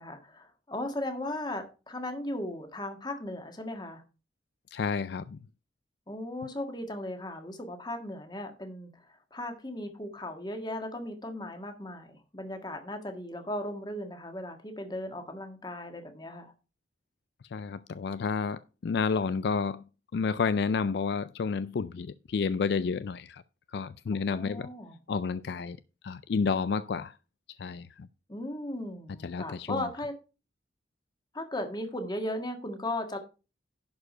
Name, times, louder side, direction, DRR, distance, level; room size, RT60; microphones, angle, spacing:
voice 1, 0.0-4.0 6.1-9.1 9.3-16.5 24.1-25.0 28.3-30.2 31.3-33.2, left 1 dB, 25° left, 1.7 m, -37 dB
voice 2, 4.7-5.4 17.5-19.8 20.1-23.4 23.7-24.7 25.1-25.8 26.0-27.1 27.6-28.1 29.2-29.8, left 5 dB, 65° left, 0.4 m, -30 dB
11.0 x 4.9 x 5.5 m
head